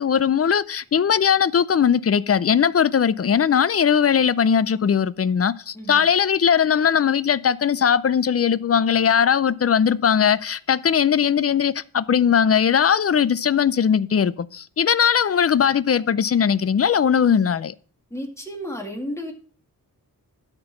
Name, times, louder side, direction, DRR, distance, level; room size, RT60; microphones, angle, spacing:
voice 1, 0.0-17.7, left 7 dB, 40° left, 0.5 m, -19 dB
voice 2, 18.1-19.3, equal, 10° left, 2.3 m, -32 dB
12.5 x 4.5 x 5.7 m
wide cardioid pair, 120°, 36 cm